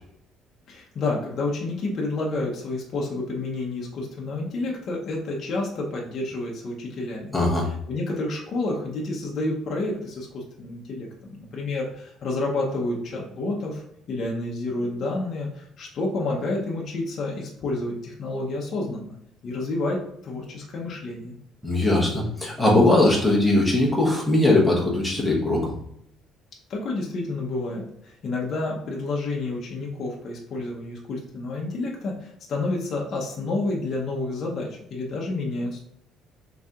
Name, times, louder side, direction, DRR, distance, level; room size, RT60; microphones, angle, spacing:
voice 1, 0.7-7.3 7.9-19.2 19.4-21.4 26.7-35.8, left 2 dB, 40° left, -2 dB, 0.7 m, -29 dB
voice 2, 7.3-7.6 21.6-25.7, left 2 dB, 5° left, -3 dB, 0.9 m, -20 dB
3.9 x 2.8 x 3.5 m, 0.73 s
cardioid pair, 170°, 0 cm